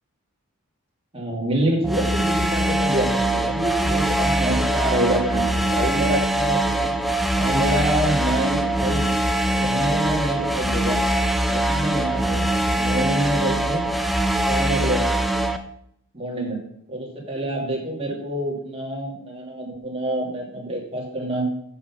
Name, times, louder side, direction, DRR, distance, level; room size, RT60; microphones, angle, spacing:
voice 1, 1.1-6.9 7.4-9.0 9.6-11.0 11.5-12.5 12.8-13.8 14.5-15.2 16.1-16.6 16.9-21.4, right 1 dB, 25° right, -2 dB, 2.3 m, -26 dB
sound 1, 1.8-15.6, right 1 dB, ahead, 0.4 m, -22 dB
8.2 x 5.8 x 5.9 m, 0.71 s
head